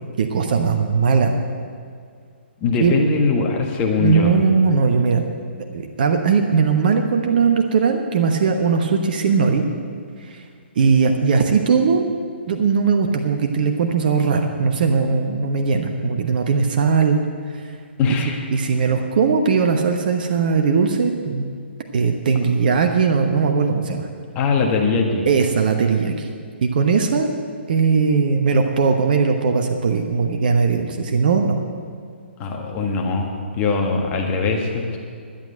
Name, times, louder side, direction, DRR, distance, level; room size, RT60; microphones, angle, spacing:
voice 1, 0.2-1.4 2.8-2.9 4.0-5.2 5.7-9.6 10.2-10.4 10.8-12.0 12.5-17.2 17.5-17.7 18.5-21.5 21.9-24.1 25.3-26.3 26.6-27.3 27.7-31.5, right 5 dB, 50° right, 5 dB, 1.0 m, -19 dB
voice 2, 2.6-4.3 18.0-18.4 24.3-25.2 32.4-33.3 33.5-35.0, left 4 dB, 25° left, 1 dB, 1.5 m, -21 dB
11.5 x 8.2 x 8.9 m, 2.2 s
figure-of-eight pair, 135°, 6 cm